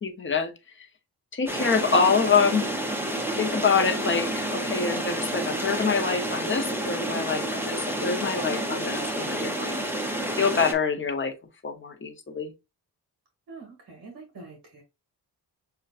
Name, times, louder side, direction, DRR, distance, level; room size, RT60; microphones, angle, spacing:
voice 1, 0.0-0.5 1.3-2.6 3.4-9.8 10.4-11.3 11.6-12.5, left 5 dB, 30° left, 0.7 m, -25 dB
sound 1, 1.5-10.7, right 1 dB, 5° right, 0.6 m, -29 dB
voice 2, 13.5-14.8, right 3 dB, 60° right, 1.6 m, -45 dB
6.5 x 2.2 x 2.4 m
wide cardioid pair, 155°, 40 cm